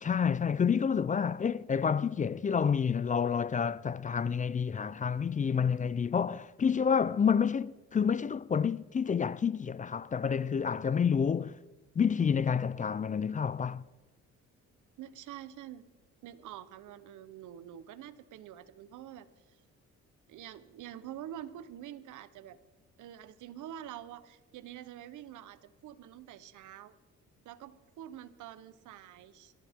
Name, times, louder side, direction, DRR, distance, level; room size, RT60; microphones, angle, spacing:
voice 1, 0.0-11.5 12.0-13.8, left 7 dB, 25° left, 0.4 m, -29 dB
voice 2, 15.0-15.8 16.2-19.6 20.3-22.6 23.0-27.0 27.4-29.5, right 11 dB, 80° right, 0.9 m, -47 dB
22.5 x 13.5 x 3.6 m
cardioid pair, 90°, 30 cm